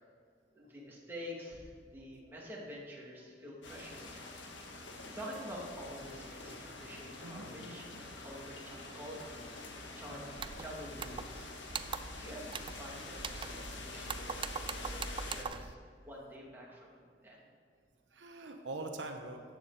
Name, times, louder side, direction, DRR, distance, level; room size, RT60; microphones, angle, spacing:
voice 1, 0.5-4.3 5.1-11.5 11.8-15.0 15.3-15.7 16.0-17.4, equal, 10° right, -5 dB, 2.6 m, -48 dB
sound 1, 3.6-15.4, left 2 dB, 85° left, 1.6 m, -46 dB
voice 2, 7.2-7.8 18.1-19.4, right 2 dB, 80° right, 4 dB, 1.1 m, -43 dB
sound 2, 10.4-10.7 11.0-11.4 11.7-12.2 12.5-12.8 13.2-13.8 14.1-15.7, right 6 dB, 25° right, 0.3 m, -41 dB
14.0 x 9.5 x 4.2 m, 2.1 s
head